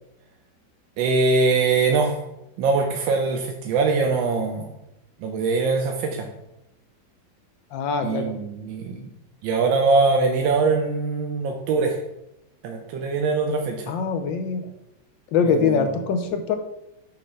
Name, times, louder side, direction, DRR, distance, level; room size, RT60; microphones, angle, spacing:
voice 1, 1.0-2.2 2.6-4.7 5.2-6.3 8.0-9.1 9.4-12.0 12.6-13.9 15.4-15.9, right 4 dB, 85° right, 2 dB, 1.4 m, -22 dB
voice 2, 7.7-8.3 13.9-14.7 15.3-16.6, left 5 dB, 80° left, 7 dB, 1.4 m, -23 dB
6.7 x 3.2 x 5.3 m, 0.88 s
omnidirectional pair, 2.0 m